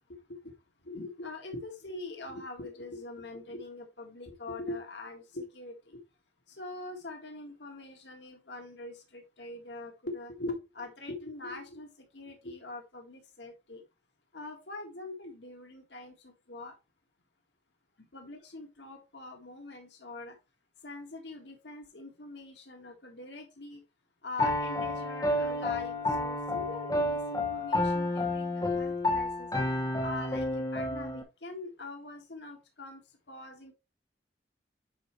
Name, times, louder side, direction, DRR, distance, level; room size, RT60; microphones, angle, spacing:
voice 1, 0.1-0.5 0.8-6.0 6.5-13.8 14.3-16.7 18.1-20.4 20.8-23.8 24.2-29.5 30.0-33.0 33.3-33.7, left 2 dB, 85° left, 3 dB, 1.7 m, -43 dB
Piano, 24.4-31.2, left 2 dB, 20° left, 1.1 m, -30 dB
9.7 x 4.4 x 3.2 m, 0.26 s
head